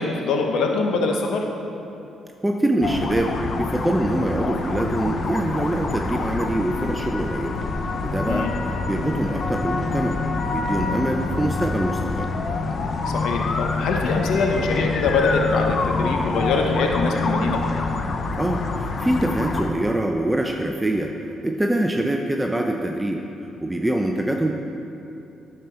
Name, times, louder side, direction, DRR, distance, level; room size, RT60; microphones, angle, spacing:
voice 1, 0.0-1.4 8.3-8.5 13.1-17.6, left 3 dB, 80° left, 2 dB, 0.8 m, -23 dB
voice 2, 2.4-7.6 8.0-12.3 16.0-16.2 18.4-24.6, right 1 dB, 10° right, 2 dB, 0.5 m, -24 dB
sound 1, 2.8-19.7, left 3 dB, 50° left, 0.7 m, -26 dB
10.0 x 6.8 x 4.4 m, 2.9 s
cardioid pair, 90°, 0 cm